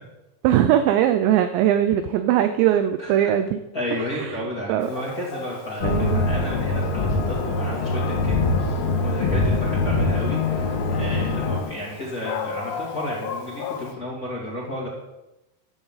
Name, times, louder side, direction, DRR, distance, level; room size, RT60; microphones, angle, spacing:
voice 1, 0.4-3.6 4.1-4.4 4.7-4.9 5.8-6.3, right 11 dB, 85° right, 9 dB, 2.5 m, -20 dB
voice 2, 3.0-3.3 3.7-14.9, equal, 25° left, -5 dB, 2.2 m, -32 dB
Dog, 4.8-13.9, left 7 dB, 70° left, 2.9 m, -37 dB
sound 1, 5.8-11.6, left 3 dB, 90° left, 4.6 m, -23 dB
14.0 x 13.0 x 4.1 m, 0.96 s
omnidirectional pair, 5.8 m